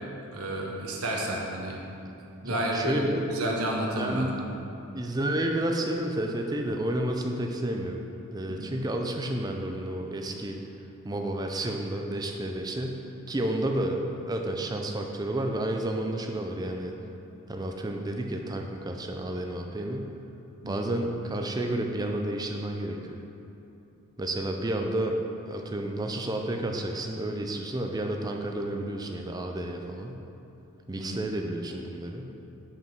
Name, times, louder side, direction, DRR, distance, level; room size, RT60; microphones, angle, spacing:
voice 1, 0.3-1.8 2.4-4.3 8.5-8.7 20.6-20.9 30.9-31.2, right 1 dB, 85° right, -2 dB, 1.1 m, -31 dB
voice 2, 2.4-3.2 4.0-4.3 4.9-8.0 8.3-10.6 11.0-13.0 13.3-14.0 14.3-16.9 17.5-20.1 20.7-23.2 24.2-25.2 25.5-30.2 30.9-32.3, right 1 dB, 15° right, 3 dB, 0.4 m, -31 dB
5.5 x 5.0 x 6.0 m, 2.9 s
head